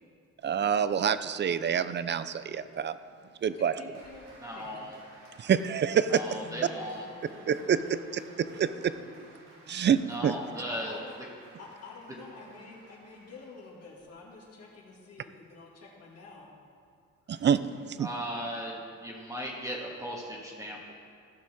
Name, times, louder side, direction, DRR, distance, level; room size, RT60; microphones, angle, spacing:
voice 1, 0.4-3.0 3.4-3.7 5.4-6.4 7.5-8.0 8.4-9.0 9.7-10.4 17.3-17.6 17.9-18.1, right 8 dB, 35° right, 14 dB, 0.4 m, -27 dB
voice 2, 3.4-4.3 4.5-4.9 6.4-9.5 10.3-11.2 11.6-16.5, left 3 dB, 55° left, -3 dB, 2.4 m, -49 dB
Applause, 3.9-14.0, right 1 dB, 85° right, 3.1 m, -56 dB
voice 3, 4.4-5.0 6.1-7.0 10.1-11.0 18.0-20.9, equal, 10° right, -3 dB, 1.6 m, -37 dB
15.5 x 6.0 x 4.5 m, 2.3 s
cardioid pair, 90°, 30 cm